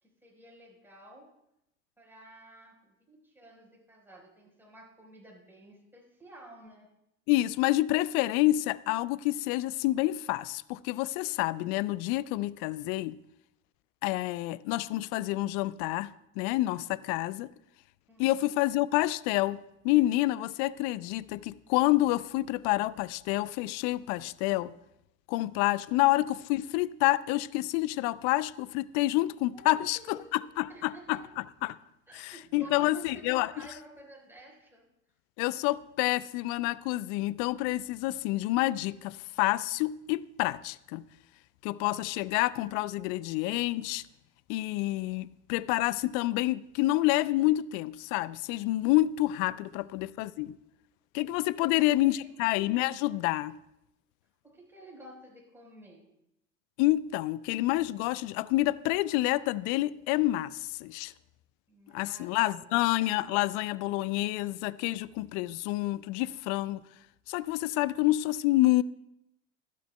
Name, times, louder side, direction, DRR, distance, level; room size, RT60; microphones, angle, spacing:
voice 1, 0.0-1.3 2.0-6.9 18.1-18.6 29.5-30.4 30.7-31.2 32.1-34.9 49.5-50.1 51.8-52.5 54.4-56.1 61.7-62.7, right 1 dB, 5° right, 4.2 m, -52 dB
voice 2, 7.3-13.2 14.0-17.5 18.2-19.6 19.8-24.7 25.3-31.2 31.6-31.8 32.2-33.5 35.4-41.0 41.6-44.0 44.5-50.5 51.1-53.5 56.8-61.1 61.9-66.8 67.3-68.8, left 17 dB, 50° left, 0.5 m, -28 dB
23.5 x 8.4 x 2.2 m
hypercardioid pair, 80°, 40 cm